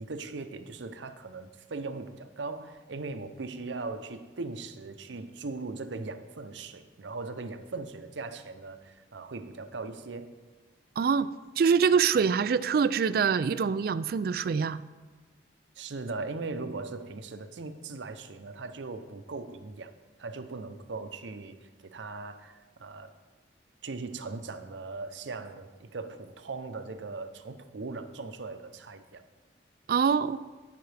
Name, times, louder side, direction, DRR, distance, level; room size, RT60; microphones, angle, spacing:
voice 1, 0.0-10.3 15.8-19.9 20.2-23.1 23.8-29.2, right 3 dB, 90° right, 9 dB, 0.6 m, -39 dB
voice 2, 11.0-14.8 29.9-30.4, right 6 dB, 55° right, 16 dB, 0.3 m, -25 dB
17.0 x 5.8 x 3.4 m, 1.3 s
head